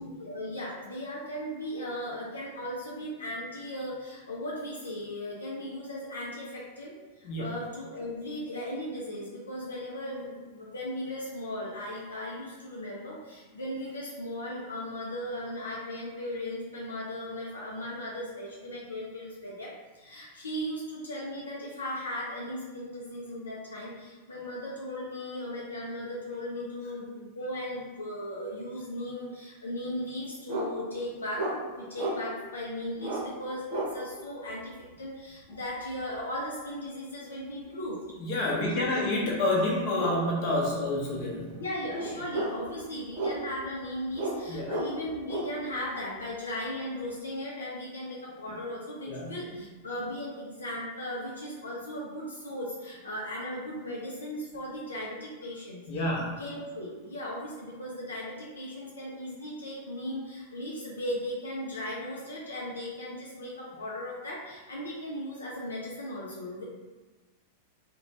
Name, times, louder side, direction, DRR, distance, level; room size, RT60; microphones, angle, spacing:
voice 1, 0.0-31.5 31.8-34.7 35.0-38.0 38.5-38.8 41.6-66.6, left 1 dB, 85° left, -4 dB, 0.4 m, -37 dB
sound 1, 30.5-30.7 31.3-31.6 32.0-32.2 33.0-33.2 33.7-33.9 35.9-36.2 39.0-39.1 40.0-40.2 40.5-40.6 41.0-41.3 41.9-42.7 43.1-43.7 44.1-44.4 44.7-45.5, right 1 dB, 55° right, 0.7 m, -32 dB
voice 2, 38.3-41.5 44.5-44.7 49.0-49.3 55.9-56.2, left 1 dB, 50° left, -3 dB, 0.8 m, -28 dB
2.5 x 2.1 x 3.0 m, 1.3 s
hypercardioid pair, 95°, 0 cm